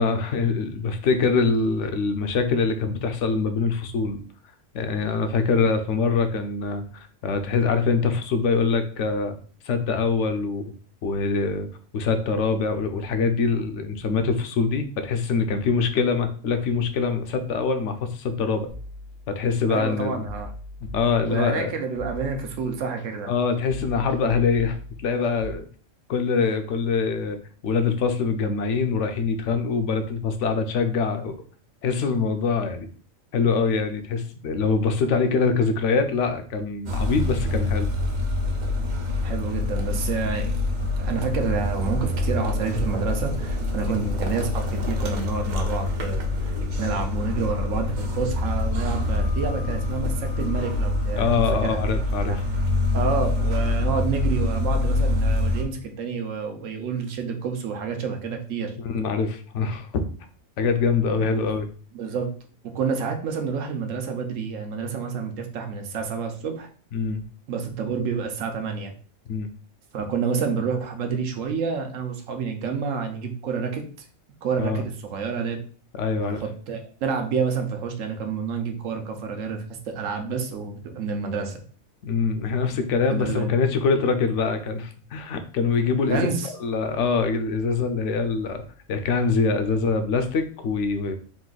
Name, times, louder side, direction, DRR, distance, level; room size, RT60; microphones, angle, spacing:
voice 1, 0.0-4.2 4.7-9.4 9.6-10.7 11.0-11.7 11.9-18.7 19.3-20.2 20.9-21.7 23.3-25.6 26.1-27.4 27.6-31.4 31.8-32.9 33.3-37.9 51.2-52.4 58.8-60.0 60.6-61.7 66.9-67.2 69.3-69.5 74.6-74.8 75.9-76.4 82.0-88.6 88.9-91.2, left 5 dB, 65° left, 8 dB, 0.9 m, -24 dB
sound 1, 18.7-19.6 20.2-21.6 21.9-23.0 23.7-25.5, left 1 dB, 90° left, 1.7 m, -40 dB
voice 2, 19.7-20.5 21.3-23.3 39.2-40.6 41.0-46.2 46.8-51.3 51.6-51.8 52.3-52.4 52.9-58.7 61.2-61.4 61.9-62.3 62.7-66.7 67.5-68.9 69.9-73.8 74.4-75.6 76.2-81.6 82.7-82.8 83.1-83.5 86.1-86.5, right 5 dB, 70° right, 5 dB, 1.1 m, -29 dB
sound 2, 36.9-55.6, left 2 dB, 45° right, 0.6 m, -25 dB
4.0 x 2.6 x 3.8 m, 0.43 s
omnidirectional pair, 1.4 m